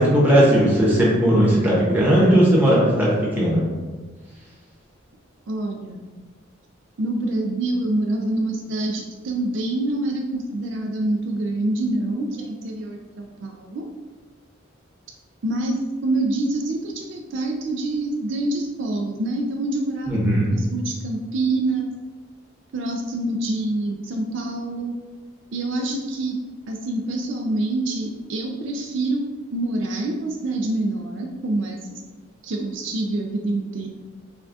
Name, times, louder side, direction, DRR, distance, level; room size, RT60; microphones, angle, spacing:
voice 1, 0.0-3.6 20.1-20.5, right 1 dB, 10° right, -7 dB, 1.0 m, -17 dB
voice 2, 5.5-6.1 7.0-13.9 15.4-21.9 22.7-24.9 25.5-26.4 26.7-32.0 32.4-33.9, right 2 dB, 65° right, 2 dB, 0.4 m, -26 dB
5.7 x 2.3 x 2.5 m, 1.3 s
head